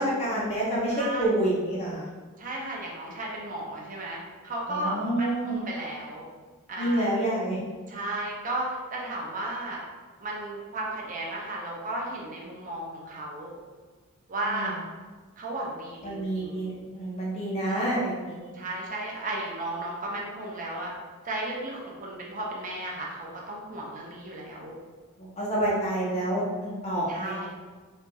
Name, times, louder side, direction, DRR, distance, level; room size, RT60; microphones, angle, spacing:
voice 1, 0.0-2.1 4.7-5.6 6.8-7.6 14.5-14.7 16.0-18.5 25.2-27.5, right 1 dB, 30° left, -6 dB, 0.7 m, -28 dB
voice 2, 0.9-1.3 2.4-6.3 6.7-7.1 7.9-9.8 10.2-13.5 14.3-14.8 15.4-16.7 17.6-18.0 18.5-20.9 21.2-24.7 27.1-27.5, right 1 dB, 40° right, -3 dB, 0.6 m, -34 dB
4.3 x 2.6 x 2.3 m, 1.4 s
head